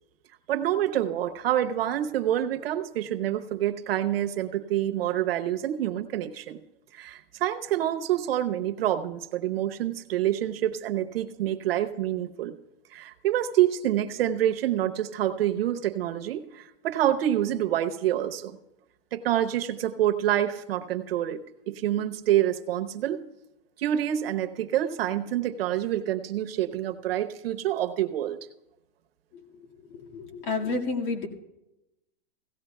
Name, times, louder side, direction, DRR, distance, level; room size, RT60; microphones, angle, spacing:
voice 1, 0.5-6.6 6.9-12.6 12.9-18.6 19.1-23.2 23.8-28.5, right 12 dB, 80° right, 8 dB, 0.9 m, -27 dB
voice 2, 29.9-31.3, left 3 dB, 60° left, 1 dB, 2.0 m, -30 dB
17.0 x 15.5 x 2.3 m, 0.96 s
supercardioid pair, 155°, 29 cm